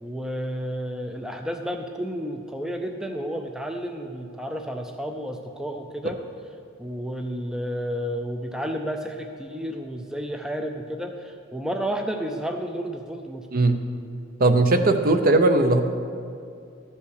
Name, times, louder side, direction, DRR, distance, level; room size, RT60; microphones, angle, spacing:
voice 1, 0.0-6.2 6.8-13.5, equal, 5° right, 4 dB, 0.4 m, -31 dB
voice 2, 14.4-15.8, right 2 dB, 45° right, 7 dB, 0.7 m, -18 dB
13.0 x 5.5 x 6.6 m, 2.4 s
head